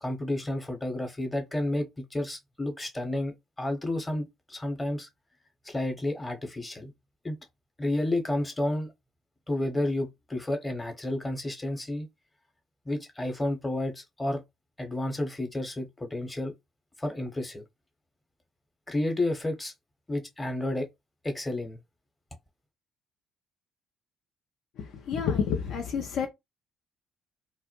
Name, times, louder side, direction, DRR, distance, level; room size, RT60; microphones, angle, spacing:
voice 1, 0.0-5.1 5.6-6.9 7.2-7.4 7.8-8.9 9.5-12.1 12.9-14.4 14.8-16.5 17.0-17.6 18.9-19.7 20.1-20.9 21.2-21.8, left 1 dB, 15° left, 0.9 m, -31 dB
voice 2, 24.8-26.3, left 6 dB, 65° left, 0.5 m, -29 dB
2.3 x 2.0 x 2.9 m
hypercardioid pair, 50°, 0 cm